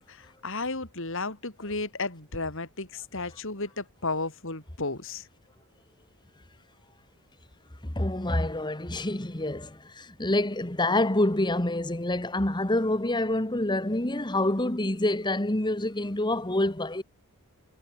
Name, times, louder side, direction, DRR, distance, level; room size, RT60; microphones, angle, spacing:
voice 1, 0.0-5.3, left 3 dB, 60° left, 4.3 m, -33 dB
voice 2, 7.8-17.0, left 1 dB, 20° left, 1.6 m, -27 dB
head